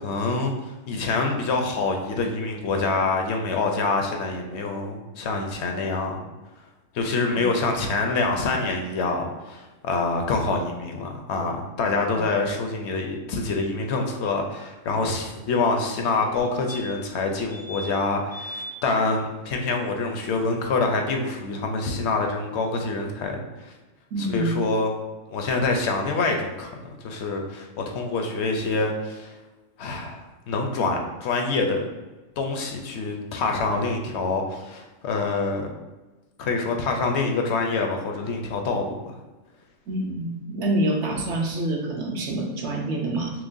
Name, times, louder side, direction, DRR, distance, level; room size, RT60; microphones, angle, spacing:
voice 1, 0.0-6.2 6.9-23.7 24.2-24.9 25.3-29.4 29.8-31.9 32.4-35.7 36.4-39.1, left 3 dB, 65° left, 3 dB, 0.8 m, -26 dB
sound 1, 16.7-17.2 17.5-17.9 18.3-18.7 21.1-21.2 21.4-21.5, equal, 40° right, 0.7 m, -38 dB
voice 2, 24.1-24.6 39.9-43.3, right 1 dB, 70° right, -1 dB, 1.0 m, -26 dB
5.9 x 2.1 x 2.6 m, 1.1 s
omnidirectional pair, 1.3 m